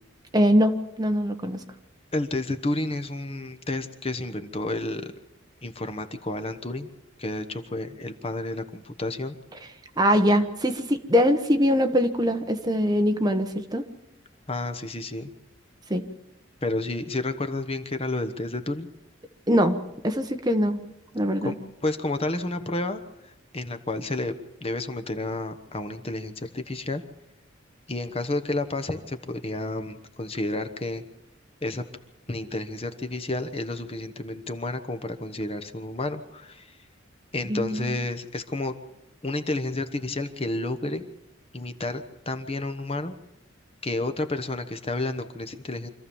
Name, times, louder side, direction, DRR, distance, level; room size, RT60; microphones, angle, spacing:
voice 1, 0.3-1.6 10.0-13.8 15.9-16.0 19.5-19.8 20.0-20.8 21.1-21.5 37.5-37.9, equal, 20° right, 6 dB, 1.2 m, -22 dB
voice 2, 2.1-5.1 5.6-6.9 7.2-9.4 14.5-15.3 16.6-18.9 21.4-21.5 21.8-24.3 24.6-27.0 27.9-31.0 31.6-31.8 32.3-36.7 37.3-38.7 39.2-41.0 41.5-43.1 43.8-45.9, left 2 dB, 30° left, 8 dB, 1.1 m, -30 dB
25.5 x 14.5 x 7.2 m, 0.87 s
head